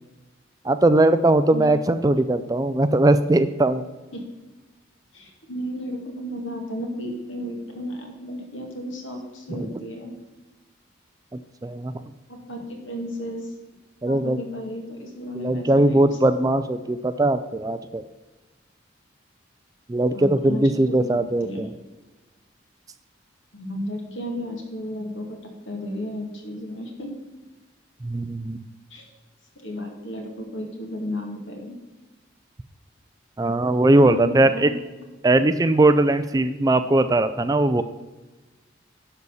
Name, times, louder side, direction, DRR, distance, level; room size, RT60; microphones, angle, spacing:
voice 1, 0.6-3.9 9.5-9.8 11.3-11.9 14.0-14.4 15.4-18.0 19.9-21.7 28.0-28.7 33.4-34.7 35.2-37.8, right 2 dB, 20° right, 11 dB, 0.3 m, -20 dB
voice 2, 5.1-10.1 12.3-13.5 14.1-16.1 20.1-21.6 23.5-25.4 25.7-27.1 28.9-29.1 29.6-31.8 34.0-34.8, equal, 80° left, 2 dB, 2.1 m, -33 dB
11.0 x 4.1 x 7.0 m, 1.2 s
head